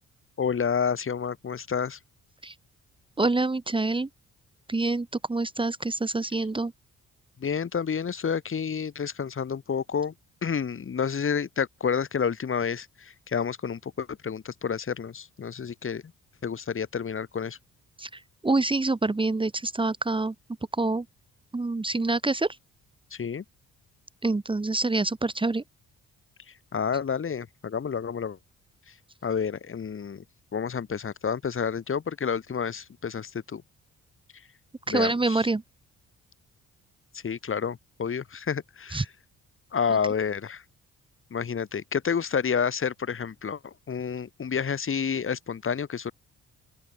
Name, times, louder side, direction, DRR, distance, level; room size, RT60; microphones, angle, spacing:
voice 1, 0.4-2.0 7.4-10.1 10.4-16.0 16.4-17.6 23.1-23.4 26.7-28.4 29.2-30.2 30.5-33.6 34.9-35.4 37.1-39.1 39.7-40.6 41.3-46.1, left 6 dB, 45° left, 4.3 m, -29 dB
voice 2, 3.2-4.1 4.7-6.7 18.0-20.3 20.8-21.1 21.5-22.5 24.2-25.6 34.9-35.6 38.9-39.1, right 2 dB, 15° right, 1.8 m, -26 dB
open air
cardioid pair, 90°, 30 cm